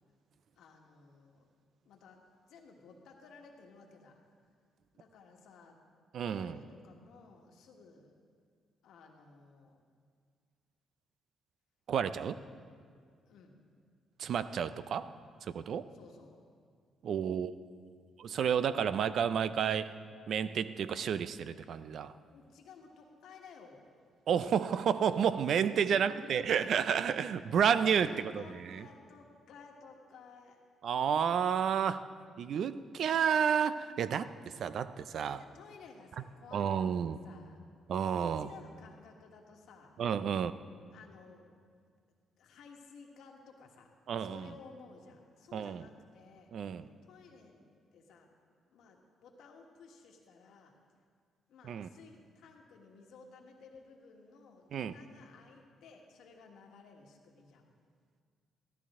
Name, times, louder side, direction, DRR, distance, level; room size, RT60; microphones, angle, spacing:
voice 1, 0.5-1.5 1.8-4.2 4.9-5.8 6.3-8.1 8.8-9.8 13.3-13.6 15.9-16.4 22.3-23.9 25.8-26.7 27.4-30.6 35.2-37.6 38.2-39.9 40.9-41.5 42.4-43.9 44.2-48.3 48.7-50.7 51.5-57.7, left 4 dB, 80° left, 2 dB, 1.4 m, -55 dB
voice 2, 6.1-6.6 11.9-12.4 14.2-15.1 15.4-15.9 17.0-17.5 18.2-19.9 20.3-22.1 24.3-28.9 30.8-32.1 32.4-35.4 36.5-37.2 37.9-38.5 40.0-40.5 44.1-44.5 45.5-45.9 46.5-46.9 51.6-51.9 54.7-54.9, right 7 dB, 65° right, 14 dB, 0.4 m, -31 dB
14.0 x 13.0 x 3.6 m, 2.1 s
cardioid pair, 90°, 0 cm